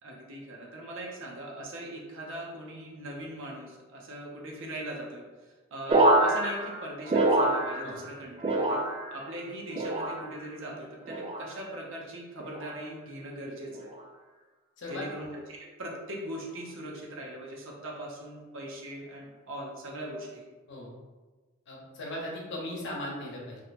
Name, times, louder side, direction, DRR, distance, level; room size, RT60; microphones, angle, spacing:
voice 1, 0.0-8.8 9.1-13.9 14.9-20.5, right 1 dB, 65° right, -1 dB, 0.7 m, -40 dB
sound 1, 5.9-8.1 8.4-9.3 9.7-10.4 11.1-11.5 12.4-12.8 13.7-14.0, right 2 dB, 25° right, 0.3 m, -26 dB
voice 2, 21.7-23.6, left 1 dB, 60° left, -2 dB, 0.8 m, -37 dB
2.7 x 2.1 x 4.0 m, 1.3 s
head